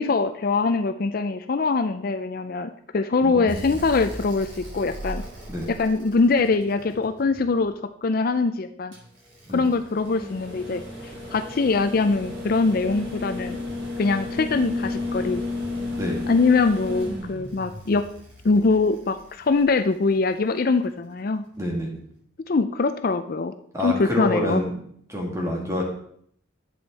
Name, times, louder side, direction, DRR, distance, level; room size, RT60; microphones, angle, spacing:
voice 1, 0.0-5.2 5.8-7.7 8.0-8.9 9.5-13.6 14.0-15.4 16.3-18.0 18.4-21.4 22.5-23.5 23.8-24.6, left 3 dB, 45° left, 9 dB, 0.4 m, -23 dB
voice 2, 3.2-3.8 5.5-5.7 9.5-9.6 16.0-16.2 21.6-21.9 23.7-24.7 25.1-25.8, left 1 dB, 15° right, -1 dB, 2.3 m, -27 dB
sound 1, 3.5-7.6 8.9-20.1 21.7-21.8, left 2 dB, 70° right, 4.8 m, -34 dB
11.0 x 8.0 x 4.1 m, 0.65 s
head